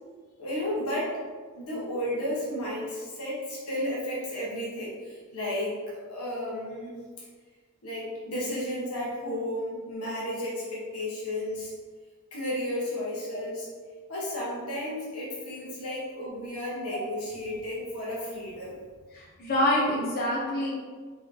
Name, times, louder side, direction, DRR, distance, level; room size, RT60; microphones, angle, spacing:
voice 1, 0.4-1.2 1.5-6.9 7.8-11.7 12.3-13.7 14.1-18.8, left 1 dB, 75° left, -6 dB, 1.1 m, -33 dB
voice 2, 19.1-20.7, left 1 dB, 45° left, -4 dB, 0.7 m, -27 dB
3.9 x 3.8 x 2.7 m, 1.5 s
head